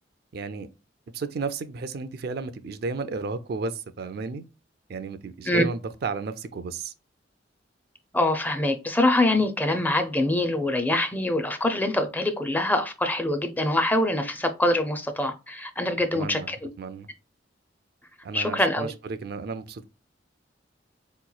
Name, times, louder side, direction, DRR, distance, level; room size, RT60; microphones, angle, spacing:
voice 1, 0.3-0.7 1.1-4.4 4.9-6.9 16.1-16.5 16.8-17.1 18.2-19.8, right 4 dB, 60° right, 0.4 m, -33 dB
voice 2, 8.1-16.6 18.3-18.9, left 1 dB, 10° left, 0.4 m, -24 dB
4.2 x 3.0 x 2.3 m
head